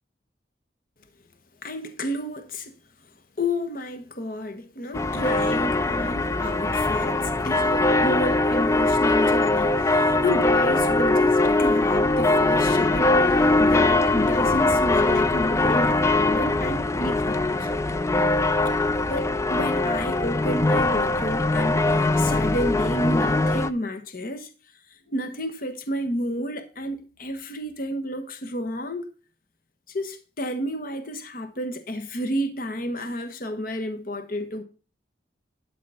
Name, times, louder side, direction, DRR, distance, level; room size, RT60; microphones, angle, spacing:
voice 1, 1.6-2.7 3.4-17.7 19.1-24.5 25.1-29.1 29.9-34.6, left 1 dB, 50° left, 1.2 m, -31 dB
sound 1, 4.9-23.7, left 2 dB, 15° left, 0.4 m, -21 dB
12.0 x 4.1 x 5.7 m
head